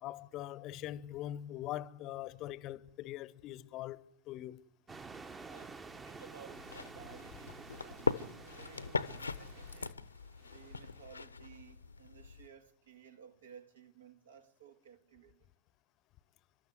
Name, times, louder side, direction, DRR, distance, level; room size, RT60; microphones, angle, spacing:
voice 1, 0.0-4.7, left 13 dB, 40° left, 0.8 m, -42 dB
sound 1, 4.9-11.1, right 4 dB, 15° right, 1.0 m, -51 dB
voice 2, 5.5-10.1 10.4-15.3, right 7 dB, 70° right, 2.0 m, -57 dB
sound 2, 6.5-12.5, left 4 dB, 80° left, 0.9 m, -40 dB
29.5 x 13.0 x 9.4 m
figure-of-eight pair, 95°, 0 cm